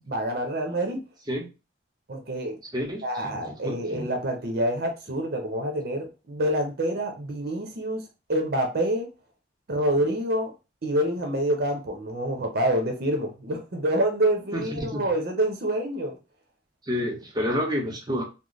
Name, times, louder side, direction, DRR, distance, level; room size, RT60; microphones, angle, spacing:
voice 1, 0.1-1.0 2.1-2.6 3.0-8.0 8.3-9.1 9.7-10.5 10.8-16.2, right 1 dB, 55° right, 3 dB, 0.7 m, -27 dB
voice 2, 2.7-3.0 3.3-4.1 14.5-15.0 16.8-18.2, equal, 20° right, 1 dB, 0.8 m, -29 dB
3.1 x 2.0 x 3.9 m, 0.29 s
head